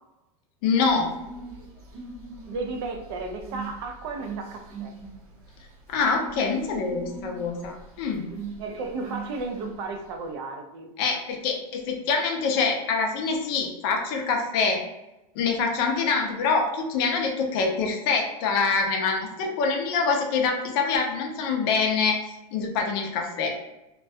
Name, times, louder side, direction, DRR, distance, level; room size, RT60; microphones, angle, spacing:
voice 1, 0.6-1.1 5.9-8.3 11.0-14.8 15.4-22.2 22.5-23.5, left 4 dB, 40° left, 2 dB, 0.4 m, -25 dB
sound 1, 0.9-10.2, right 4 dB, 80° right, 0.9 m, -41 dB
voice 2, 2.5-4.9 8.6-10.9, right 3 dB, 45° right, 5 dB, 0.4 m, -34 dB
2.3 x 2.1 x 2.6 m, 0.94 s
supercardioid pair, 170°, 19 cm